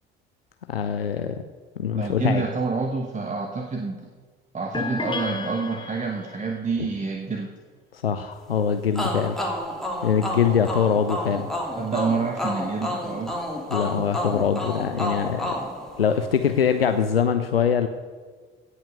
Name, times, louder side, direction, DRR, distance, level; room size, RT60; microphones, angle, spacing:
voice 1, 0.7-1.4 1.8-2.4 6.8-6.9 7.9-9.4 10.0-11.5 13.7-15.6 16.0-17.9, left 7 dB, 85° left, 8 dB, 0.5 m, -23 dB
voice 2, 1.9-4.0 4.5-7.5 11.8-13.4 15.6-15.7, right 4 dB, 25° right, 3 dB, 1.2 m, -28 dB
sound 1, 4.7-6.5, left 3 dB, 15° left, 1.5 m, -32 dB
sound 2, 8.9-16.5, left 1 dB, ahead, 2.9 m, -30 dB
17.0 x 5.7 x 6.6 m, 1.5 s
figure-of-eight pair, 55°, 29 cm